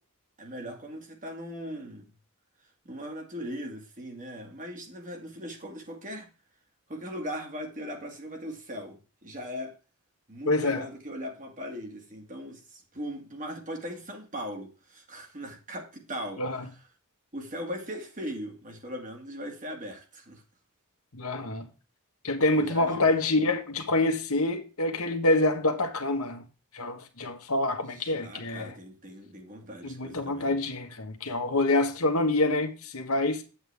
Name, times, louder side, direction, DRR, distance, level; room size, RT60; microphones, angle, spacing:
voice 1, 0.4-2.1 2.9-6.3 6.9-9.8 10.3-16.7 17.3-20.4 22.5-23.1 28.0-30.6, equal, 35° right, 2.0 m, -39 dB
voice 2, 10.5-10.8 16.4-16.6 21.1-21.7 22.2-26.4 26.7-28.7 29.8-33.4, left 2 dB, 70° left, 1.4 m, -26 dB
8.8 x 8.0 x 3.4 m
head